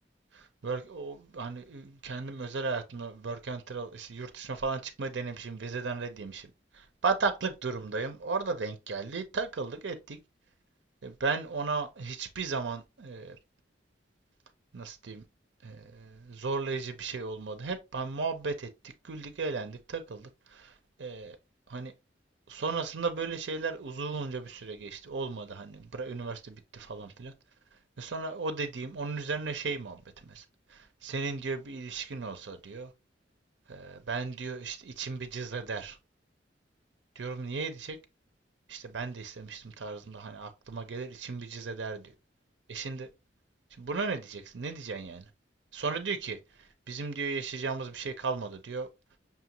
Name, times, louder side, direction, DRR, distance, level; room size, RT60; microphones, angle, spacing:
voice 1, 0.3-6.5 6.7-10.2 11.0-13.4 14.7-15.2 15.6-20.7 21.0-21.4 21.7-21.9 22.5-27.3 28.0-30.4 30.7-32.9 33.7-36.0 37.2-38.0 38.7-42.0 42.7-43.1 43.8-45.3 45.7-48.9, right 4 dB, 70° right, 0.6 m, -35 dB
5.7 x 2.4 x 2.9 m
head